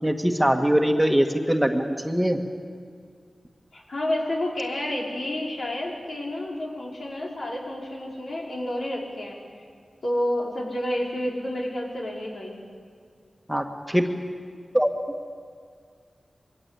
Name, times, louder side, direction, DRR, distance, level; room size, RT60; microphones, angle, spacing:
voice 1, 0.0-2.4 13.5-14.1 14.7-14.9, equal, 5° right, 4 dB, 1.8 m, -22 dB
voice 2, 3.7-9.6 10.0-12.6, left 1 dB, 70° left, -3 dB, 5.2 m, -30 dB
23.0 x 18.5 x 8.5 m, 2.1 s
cardioid pair, 55°, 0 cm